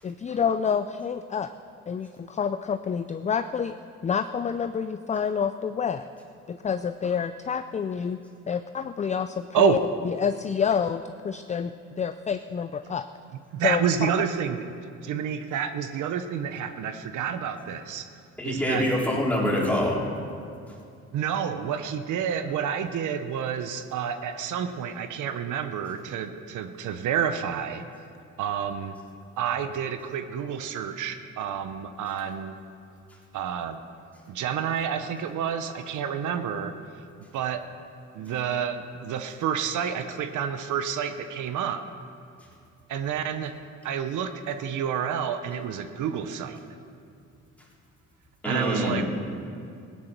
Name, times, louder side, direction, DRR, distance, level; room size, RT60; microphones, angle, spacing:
voice 1, 0.0-1.5 1.9-3.7 4.0-6.1 6.5-8.2 8.5-9.8 10.0-13.1 13.6-13.9, left 7 dB, 25° left, 10 dB, 0.4 m, -28 dB
voice 2, 13.5-14.6 15.0-18.1 18.4-18.8 21.1-27.8 28.4-29.0 29.4-32.6 33.3-33.8 34.3-36.7 37.3-37.6 38.1-41.8 42.9-43.5 43.8-46.6 48.4-49.0, right 8 dB, 80° right, 9 dB, 0.8 m, -29 dB
voice 3, 18.4-20.0 48.4-49.0, equal, 5° left, -4 dB, 3.4 m, -25 dB
16.5 x 9.8 x 6.0 m, 2.4 s
cardioid pair, 90°, 30 cm